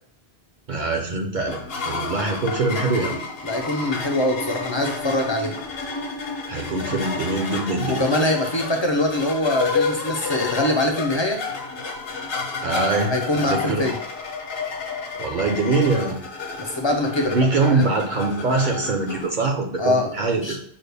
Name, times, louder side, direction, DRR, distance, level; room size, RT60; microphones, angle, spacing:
voice 1, 0.7-3.2 6.5-8.0 12.6-13.9 15.2-16.2 17.3-20.6, right 3 dB, 55° right, 1 dB, 0.7 m, -23 dB
sound 1, 1.5-19.3, left 4 dB, 65° left, 1.0 m, -30 dB
voice 2, 3.4-5.5 7.9-11.4 13.1-14.0 16.6-17.4 17.6-17.9 19.8-20.2 20.4-20.6, left 1 dB, 45° left, 2 dB, 0.4 m, -23 dB
5.6 x 2.2 x 3.3 m, 0.64 s
omnidirectional pair, 1.1 m